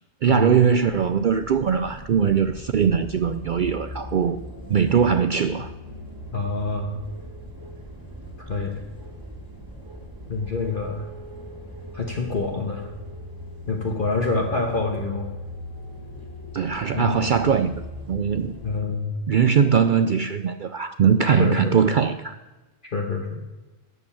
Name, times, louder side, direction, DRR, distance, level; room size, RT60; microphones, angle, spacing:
voice 1, 0.2-4.4 4.7-5.7 16.5-17.8 18.1-18.6 19.3-22.4, right 7 dB, 70° right, 11 dB, 0.4 m, -21 dB
sound 1, 0.9-18.8, equal, 15° right, 2.1 m, -39 dB
voice 2, 6.3-7.0 8.5-8.8 10.3-11.0 11.9-12.9 13.7-15.3 16.9-17.2 18.6-19.1 21.2-21.8 22.9-23.4, left 3 dB, 45° left, 1 dB, 1.2 m, -26 dB
12.5 x 5.3 x 8.6 m, 1.1 s
omnidirectional pair, 1.4 m